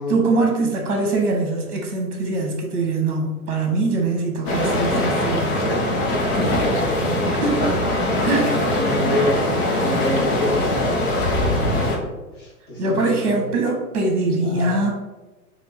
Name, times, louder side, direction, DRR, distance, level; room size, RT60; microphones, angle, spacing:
voice 1, 0.0-5.6 7.4-7.7 8.2-8.6 12.8-14.9, right 3 dB, 50° right, 1 dB, 0.9 m, -22 dB
sound 1, 4.4-12.0, left 1 dB, 45° left, 1.1 m, -22 dB
voice 2, 6.1-7.6 8.5-9.4 9.8-13.5 14.4-14.8, left 1 dB, 25° left, -6 dB, 1.4 m, -28 dB
3.5 x 2.6 x 4.1 m, 1.2 s
figure-of-eight pair, 105°, 44 cm